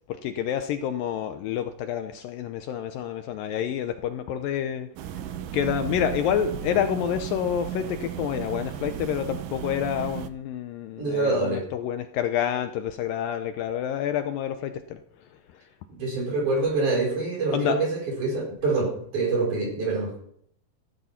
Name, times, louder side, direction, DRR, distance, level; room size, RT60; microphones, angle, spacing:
voice 1, 0.1-4.9 5.5-15.0 17.5-17.8, left 9 dB, 80° left, 8 dB, 2.1 m, -28 dB
sound 1, 5.0-10.3, right 10 dB, 75° right, 2.1 m, -35 dB
voice 2, 11.0-11.7 15.9-20.1, right 3 dB, 50° right, 1 dB, 6.2 m, -25 dB
15.0 x 12.5 x 5.7 m, 0.69 s
omnidirectional pair, 4.7 m